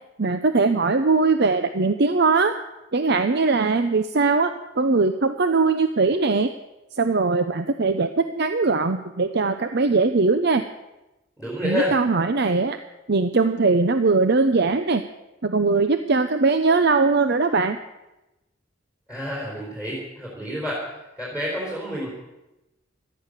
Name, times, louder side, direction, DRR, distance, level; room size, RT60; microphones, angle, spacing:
voice 1, 0.2-2.6 2.9-6.5 6.9-10.6 11.6-12.8 13.1-15.0 15.4-17.8, right 3 dB, 55° right, 9 dB, 0.7 m, -20 dB
voice 2, 11.4-11.9 19.1-20.8 21.2-22.1, equal, 5° right, -4 dB, 4.4 m, -29 dB
17.5 x 12.5 x 6.6 m, 0.97 s
head